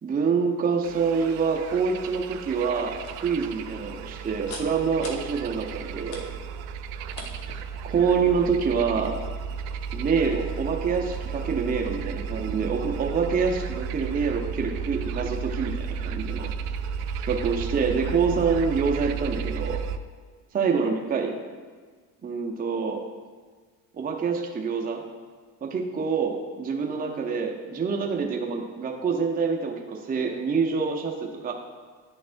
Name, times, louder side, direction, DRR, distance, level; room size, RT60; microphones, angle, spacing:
voice 1, 0.0-6.2 7.8-9.2 9.9-16.5 17.2-19.8 20.5-21.3 22.2-23.0 23.9-25.0 25.6-31.5, right 5 dB, 20° right, 1 dB, 0.6 m, -26 dB
sound 1, 0.8-20.0, right 6 dB, 65° right, 0.5 m, -33 dB
sound 2, 2.9-8.3, left 3 dB, 90° left, 1.0 m, -45 dB
10.5 x 4.0 x 2.6 m, 1.5 s
hypercardioid pair, 75°, 47 cm